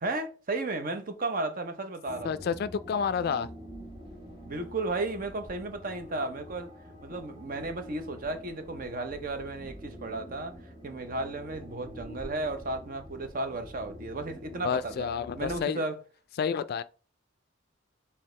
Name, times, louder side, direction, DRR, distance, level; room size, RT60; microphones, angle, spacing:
voice 1, 0.0-2.4 4.4-6.7 7.0-10.6 10.8-15.1 15.4-16.0, right 2 dB, 45° right, 0.7 m, -34 dB
sound 1, 2.1-15.6, equal, 25° right, 1.1 m, -46 dB
voice 2, 2.2-3.5 14.6-15.8 16.4-16.8, left 6 dB, 50° left, 0.3 m, -29 dB
4.6 x 3.4 x 3.2 m
head